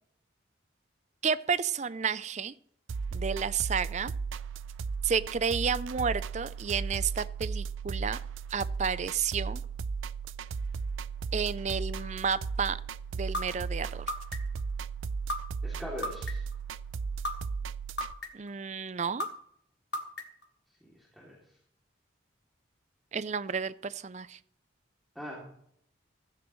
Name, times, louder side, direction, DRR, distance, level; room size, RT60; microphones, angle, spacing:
voice 1, 1.2-2.5 3.1-4.1 5.0-8.2 8.5-9.6 11.3-12.8 13.1-14.1 18.3-19.3 23.1-24.4, right 6 dB, 35° right, 16 dB, 0.5 m, -31 dB
sound 1, 2.9-18.1, right 5 dB, 90° right, 0.5 m, -36 dB
sound 2, 13.3-13.4 14.1-14.6 15.3-15.4 16.0-16.5 17.2-17.3 18.0-18.5 19.2-19.3 19.9-20.4, left 1 dB, 60° left, 1.7 m, -32 dB
voice 2, 15.6-16.4 20.8-21.3 25.1-25.5, left 1 dB, ahead, -5 dB, 2.7 m, -41 dB
16.0 x 14.0 x 3.1 m, 0.68 s
head